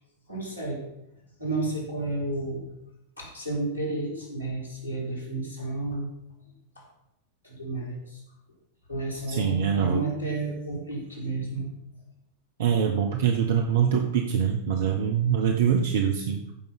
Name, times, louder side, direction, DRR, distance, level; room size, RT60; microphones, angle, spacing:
voice 1, 0.3-0.9 1.4-2.7 3.2-6.1 6.8-6.9 7.4-8.2 8.9-11.7, right 2 dB, 90° right, -1 dB, 3.6 m, -31 dB
voice 2, 9.3-10.0 12.6-16.4, right 8 dB, 60° right, 4 dB, 0.8 m, -24 dB
14.5 x 5.3 x 5.2 m, 0.83 s
figure-of-eight pair, 90°, 0 cm